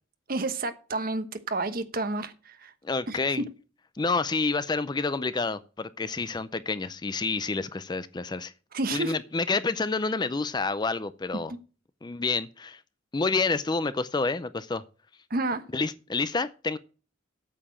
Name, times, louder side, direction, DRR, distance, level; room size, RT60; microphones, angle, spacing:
voice 1, 0.3-2.7 3.1-3.4 8.7-9.1 11.5-11.6 15.3-15.6, right 2 dB, 45° right, 1.1 m, -30 dB
voice 2, 2.8-3.4 4.0-8.5 8.9-11.5 12.0-12.8 13.1-14.8 15.7-16.8, left 3 dB, 20° left, 0.4 m, -28 dB
8.8 x 6.7 x 7.3 m
head